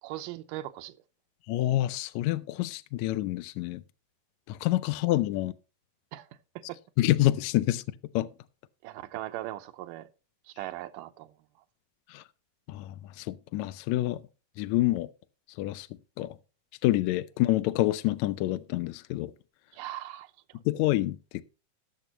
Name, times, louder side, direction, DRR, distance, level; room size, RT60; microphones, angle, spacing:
voice 1, 0.0-0.9 6.1-6.3 6.6-6.8 8.8-10.1 10.5-11.4 19.7-20.3, right 15 dB, 85° right, 2.3 m, -39 dB
voice 2, 1.5-3.8 4.5-5.5 7.0-7.8 8.1-8.3 12.1-12.2 12.7-14.2 14.6-15.1 15.6-15.9 16.2-16.3 16.8-19.3 20.6-21.4, left 16 dB, 80° left, 1.7 m, -27 dB
19.0 x 6.8 x 2.9 m
omnidirectional pair, 3.8 m